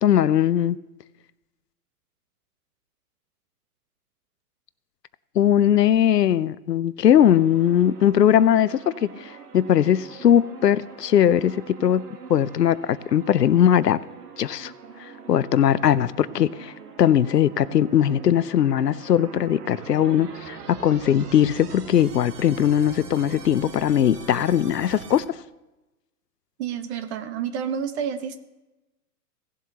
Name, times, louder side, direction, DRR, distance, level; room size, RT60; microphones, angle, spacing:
voice 1, 0.0-0.8 5.3-12.0 12.3-14.0 14.4-14.7 15.0-16.7 17.0-25.2, left 10 dB, 85° left, 17 dB, 0.6 m, -20 dB
sound 1, 7.1-25.2, right 6 dB, 70° right, 1.4 m, -42 dB
voice 2, 26.6-28.4, right 8 dB, 45° right, 9 dB, 1.2 m, -29 dB
17.0 x 7.4 x 2.9 m, 1.0 s
hypercardioid pair, 115°, 47 cm